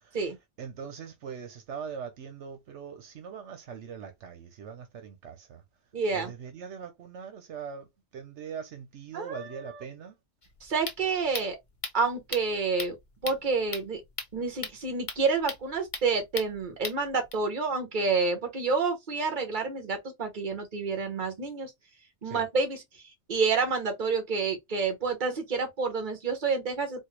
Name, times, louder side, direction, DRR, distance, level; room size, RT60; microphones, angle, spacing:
voice 1, 0.6-5.6 6.1-7.9 8.1-10.1 22.2-22.4, right 7 dB, 80° right, 1.0 m, -41 dB
voice 2, 5.9-6.3 9.1-9.8 10.6-11.6 11.9-12.9 13.2-14.0 14.3-21.7 22.2-22.8 23.3-27.0, right 4 dB, 45° right, 1.2 m, -29 dB
sound 1, 10.4-17.3, left 3 dB, 35° left, 0.7 m, -40 dB
4.4 x 2.1 x 3.2 m
omnidirectional pair, 1.2 m